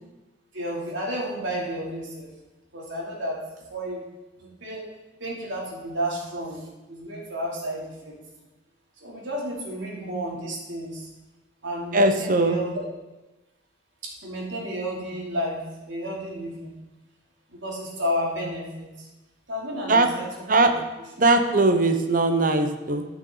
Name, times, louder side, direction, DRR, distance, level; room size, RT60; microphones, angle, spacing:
voice 1, 0.5-2.3 2.7-3.4 3.7-4.1 4.6-4.8 5.2-8.2 9.0-11.1 11.6-12.8 14.0-16.7 17.5-18.9 19.5-20.3 20.6-20.7, equal, 75° right, -4 dB, 2.9 m, -31 dB
voice 2, 11.9-12.6 19.9-20.1 20.5-20.8 21.2-23.1, right 2 dB, 45° right, 6 dB, 0.9 m, -20 dB
14.0 x 6.2 x 3.9 m, 1.1 s
head